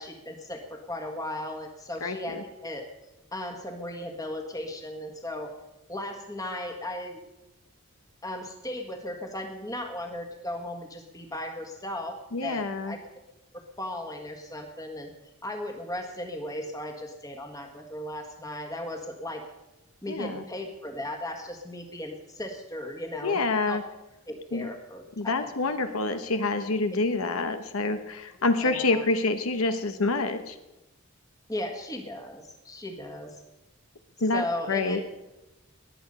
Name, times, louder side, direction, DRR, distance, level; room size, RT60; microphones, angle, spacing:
voice 1, 0.0-2.9 3.3-5.5 5.9-7.2 8.2-13.0 13.5-15.1 15.4-19.4 20.0-23.8 24.3-25.3 26.9-27.0 28.6-29.0 31.5-33.4 34.3-35.0, left 1 dB, 15° left, 4 dB, 1.6 m, -36 dB
voice 2, 2.0-2.4 12.3-13.0 20.1-20.4 23.2-23.8 24.5-24.7 25.2-30.6 34.2-35.0, left 3 dB, 75° left, 9 dB, 0.9 m, -27 dB
20.5 x 8.3 x 5.4 m, 0.98 s
head